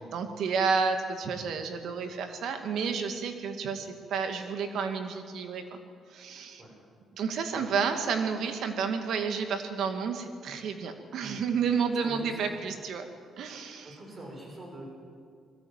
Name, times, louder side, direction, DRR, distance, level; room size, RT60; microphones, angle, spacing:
voice 1, 0.0-5.8 6.1-6.6 7.2-13.1 13.4-13.9, right 5 dB, 75° right, 6 dB, 2.1 m, -31 dB
voice 2, 11.9-12.4 13.8-14.8, right 1 dB, 35° right, -1 dB, 6.8 m, -44 dB
21.0 x 14.0 x 9.0 m, 2.2 s
cardioid pair, 90°, 0 cm